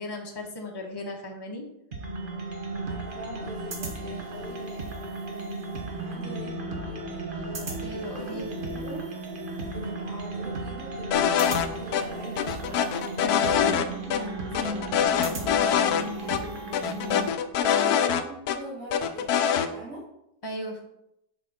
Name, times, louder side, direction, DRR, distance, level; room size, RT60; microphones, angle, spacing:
voice 1, 0.0-1.7 7.8-8.6 13.2-13.6 17.6-18.0 20.4-20.8, left 1 dB, 15° left, 1 dB, 1.1 m, -36 dB
sound 1, 1.9-17.3, right 2 dB, 35° right, 1.2 m, -35 dB
voice 2, 2.9-9.1 9.7-12.9 13.4-20.1, right 2 dB, 55° right, -8 dB, 3.1 m, -43 dB
sound 2, 11.1-11.7 11.9-12.0 12.4-13.9 14.1-14.2 14.5-16.0 16.3-16.4 16.7-18.6 18.9-19.7, left 8 dB, 80° left, 1.1 m, -24 dB
7.2 x 4.6 x 5.7 m, 0.82 s
omnidirectional pair, 1.6 m